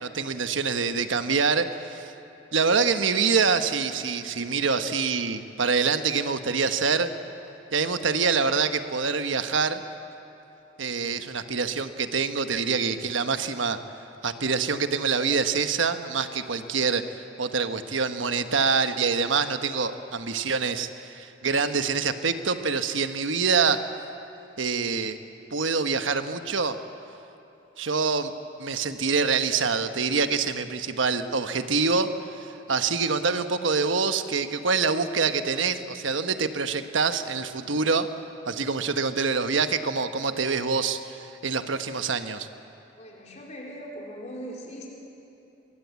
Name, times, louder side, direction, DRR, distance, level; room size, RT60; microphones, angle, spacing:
voice 1, 0.0-2.1 2.5-7.1 7.7-9.8 10.8-13.8 14.2-17.0 17.4-23.9 24.6-25.2 25.5-26.8 27.8-28.3 28.6-32.1 32.4-38.1 38.5-42.5, right 5 dB, 85° right, 9 dB, 1.2 m, -25 dB
voice 2, 43.0-44.9, equal, 40° left, -2 dB, 4.3 m, -40 dB
23.0 x 22.5 x 8.3 m, 2.9 s
head